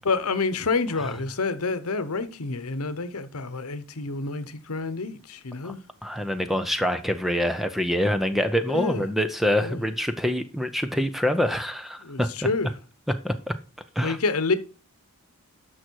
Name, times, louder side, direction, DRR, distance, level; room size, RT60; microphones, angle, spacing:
voice 1, 0.0-5.8 8.7-9.1 9.6-9.8 12.0-12.7 14.0-14.6, left 4 dB, 85° left, 1.0 m, -28 dB
voice 2, 6.0-12.3 13.1-13.5 14.0-14.2, equal, ahead, 0.6 m, -25 dB
11.0 x 6.2 x 4.6 m
head